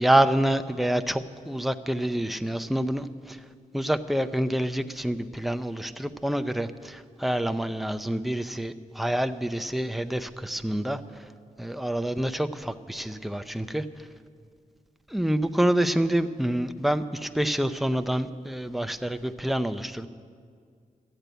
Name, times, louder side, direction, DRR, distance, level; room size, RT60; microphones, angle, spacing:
voice 1, 0.0-3.4 3.7-11.3 11.6-13.9 15.1-20.1, right 1 dB, ahead, 9 dB, 0.5 m, -27 dB
13.5 x 8.0 x 9.1 m, 2.1 s
wide cardioid pair, 105°, 14 cm